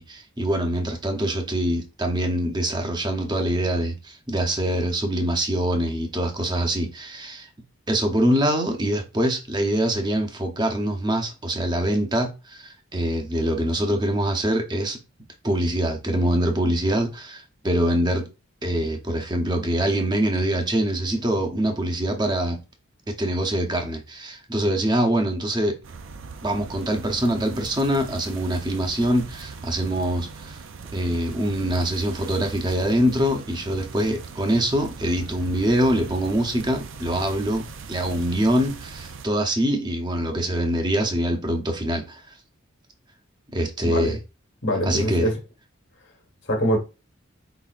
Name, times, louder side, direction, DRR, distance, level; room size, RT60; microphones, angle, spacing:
voice 1, 0.0-7.5 7.9-15.0 15.4-18.3 18.6-22.6 23.1-25.8 26.4-30.6 30.9-42.2 43.5-44.2 44.8-45.2, right 1 dB, 20° right, 0.8 m, -24 dB
sound 1, 25.8-39.3, right 4 dB, 60° right, 0.4 m, -40 dB
voice 2, 44.6-45.3 46.5-46.8, equal, 55° left, 1.5 m, -23 dB
4.8 x 4.1 x 2.5 m
head